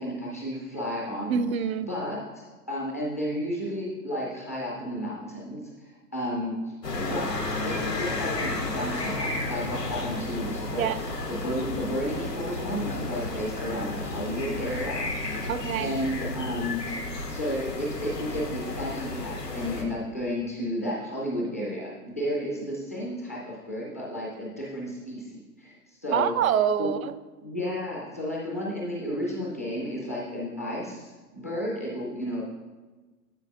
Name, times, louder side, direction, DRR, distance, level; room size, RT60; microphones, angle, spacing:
voice 1, 0.0-1.4 1.9-10.9 11.3-15.5 15.8-17.0 17.3-26.3 26.8-26.9 27.4-32.4, equal, 10° left, -4 dB, 0.3 m, -32 dB
voice 2, 1.3-1.9 10.8-11.0 15.5-16.0 26.1-27.2, right 8 dB, 60° right, 13 dB, 0.5 m, -25 dB
sound 1, 6.8-19.8, left 2 dB, 90° left, 1.3 m, -32 dB
9.8 x 7.2 x 2.4 m, 1.3 s
figure-of-eight pair, 115°, 47 cm